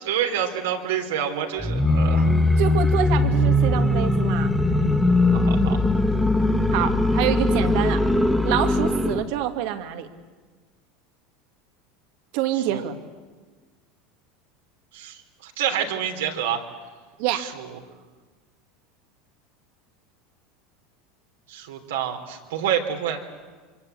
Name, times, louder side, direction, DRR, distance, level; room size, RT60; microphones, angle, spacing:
voice 1, 0.0-2.3 5.3-5.8 12.5-12.8 14.9-16.6 17.3-17.7 21.5-23.2, right 9 dB, 85° right, 3 dB, 3.6 m, -28 dB
sound 1, 1.6-9.3, left 1 dB, 5° left, 1.7 m, -20 dB
voice 2, 2.6-4.5 6.7-8.0 8.4-10.1 12.3-13.0 17.2-17.5, right 12 dB, 65° right, 6 dB, 2.3 m, -26 dB
26.5 x 24.5 x 8.3 m, 1.4 s
hypercardioid pair, 100°, 0 cm